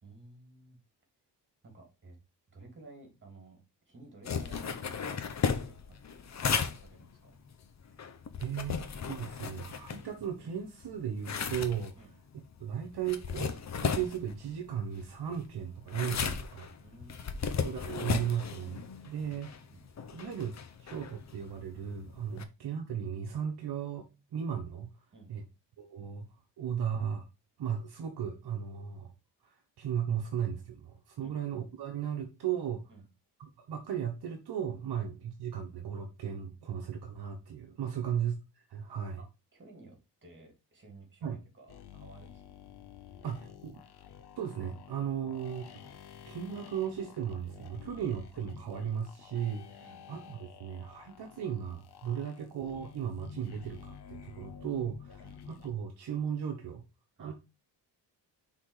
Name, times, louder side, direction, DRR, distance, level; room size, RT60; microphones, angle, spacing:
voice 1, 0.0-0.8 1.6-2.2 2.5-4.7 5.9-7.4 12.0-12.2 16.8-17.5 19.7-19.8 25.1-25.3 31.2-31.4 32.9-33.0 34.9-35.0 37.8-38.1 39.2-42.4 43.1-43.4 49.8-50.0 55.2-55.5 57.2-57.3, right 3 dB, 25° right, 2 dB, 3.0 m, -55 dB
sound 1, 4.2-10.5 10.8-22.4, left 6 dB, 40° left, 0.8 m, -36 dB
voice 2, 8.4-8.8 9.0-11.9 12.6-16.7 17.6-19.5 20.1-24.9 25.3-25.4 25.8-26.3 26.6-27.3 27.6-29.1 29.4-32.9 33.4-39.2 41.2-41.4 43.2-43.8 44.4-46.0 46.3-56.8 57.2-57.3, right 8 dB, 60° right, 2 dB, 1.2 m, -36 dB
sound 2, 41.7-55.7, left 8 dB, 65° left, 0.9 m, -51 dB
6.0 x 3.9 x 4.8 m, 0.27 s
wide cardioid pair, 140°, 43 cm